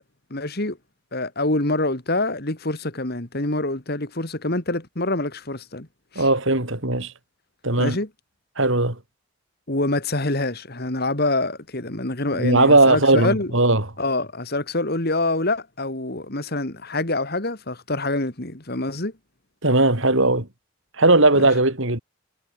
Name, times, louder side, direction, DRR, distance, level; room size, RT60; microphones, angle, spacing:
voice 1, 0.3-0.8 1.1-5.9 6.1-6.3 7.8-8.1 9.7-13.5 14.0-19.1 21.4-21.5, left 2 dB, 45° left, 2.3 m, -26 dB
voice 2, 6.2-7.1 7.6-8.0 8.6-9.0 12.3-13.9 19.6-20.5 21.0-22.0, right 2 dB, 60° right, 3.5 m, -18 dB
head